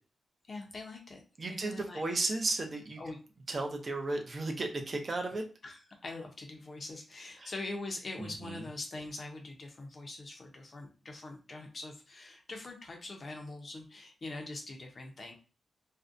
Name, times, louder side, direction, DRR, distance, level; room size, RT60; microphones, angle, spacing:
voice 1, 0.4-2.0 3.0-3.2 5.6-15.3, left 2 dB, 40° left, 2 dB, 0.5 m, -43 dB
voice 2, 1.4-3.0 3.5-5.5 7.4-7.5 8.2-8.6, right 2 dB, 35° right, 4 dB, 0.5 m, -34 dB
2.5 x 2.1 x 2.4 m, 0.35 s
wide cardioid pair, 135°, 0 cm